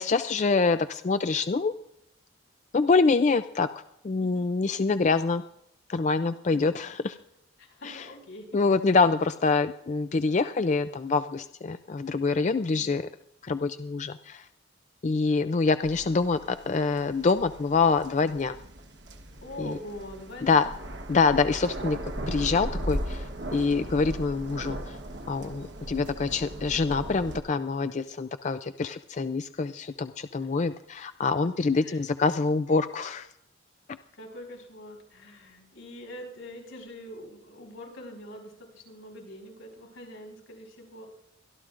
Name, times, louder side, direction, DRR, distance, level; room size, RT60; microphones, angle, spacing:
voice 1, 0.0-1.7 2.7-3.7 4.0-5.4 5.9-7.2 7.8-8.0 8.5-13.1 13.4-14.5 15.0-18.6 19.6-19.8 20.4-20.6 21.1-25.0 25.3-33.3 33.9-34.0, left 4 dB, 35° left, 11 dB, 0.4 m, -25 dB
voice 2, 4.2-4.5 7.6-8.5 8.9-9.0 12.6-12.9 19.4-20.9 30.4-30.5 31.8-32.0 34.2-41.1, left 1 dB, 80° left, 1 dB, 5.2 m, -44 dB
sound 1, 15.8-27.4, right 1 dB, 55° right, 1.2 m, -38 dB
24.0 x 12.5 x 2.5 m, 0.78 s
head